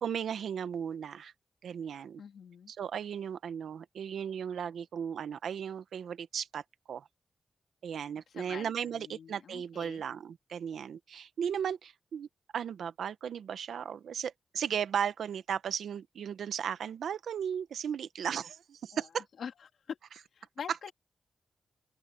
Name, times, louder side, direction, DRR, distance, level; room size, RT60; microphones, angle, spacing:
voice 1, 0.0-1.3 1.6-2.2 2.7-6.6 6.9-7.1 7.8-12.3 12.5-19.3, right 8 dB, 90° right, 1.0 m, -36 dB
voice 2, 2.2-2.7 8.3-10.0 18.9-19.1 19.4-19.5 19.9-20.0 20.3-20.9, left 7 dB, 80° left, 2.8 m, -44 dB
open air
cardioid pair, 65°, 0 cm